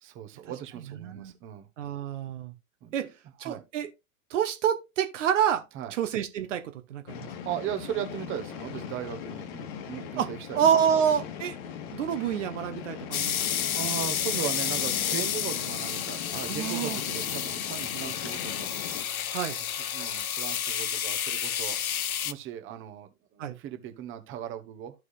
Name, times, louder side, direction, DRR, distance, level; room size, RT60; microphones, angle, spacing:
voice 1, 0.0-1.7 2.8-2.9 3.4-3.6 5.7-5.9 7.4-10.6 13.7-18.7 19.9-24.9, right 10 dB, 30° right, 1.2 m, -38 dB
voice 2, 1.0-1.3 1.8-2.5 2.9-3.1 3.4-3.9 4.3-5.6 5.9-7.3 10.2-11.6 11.9-13.4 16.5-17.0 19.3-19.6 23.4-23.6, right 8 dB, 60° right, 1.0 m, -28 dB
sound 1, 7.1-19.0, left 8 dB, 45° left, 1.4 m, -39 dB
sound 2, 13.1-22.3, left 9 dB, 90° left, 0.6 m, -31 dB
14.0 x 4.7 x 2.4 m
figure-of-eight pair, 100°, 41 cm